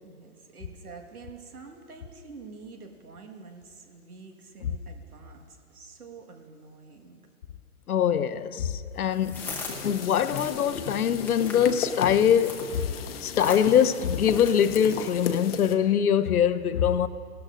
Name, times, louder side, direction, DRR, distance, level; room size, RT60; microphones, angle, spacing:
voice 1, 0.0-7.2, right 4 dB, 85° right, 1.7 m, -47 dB
voice 2, 7.9-9.5 9.8-12.8 13.2-17.1, left 9 dB, 80° left, 0.7 m, -23 dB
sound 1, 9.0-14.9, left 3 dB, 5° left, 0.7 m, -42 dB
sound 2, 9.4-15.8, left 6 dB, 45° left, 0.8 m, -36 dB
18.0 x 12.5 x 2.5 m
hypercardioid pair, 140°, 44 cm